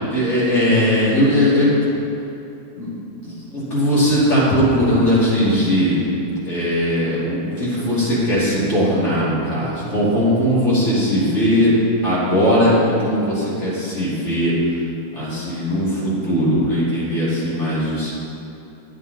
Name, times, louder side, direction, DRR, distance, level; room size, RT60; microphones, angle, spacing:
voice 1, 0.1-1.7 2.8-2.9 3.2-6.0 6.4-11.7 12.0-14.5 15.1-18.1, equal, 45° left, -9 dB, 2.9 m, -19 dB
8.9 x 8.8 x 4.0 m, 2.7 s
omnidirectional pair, 1.6 m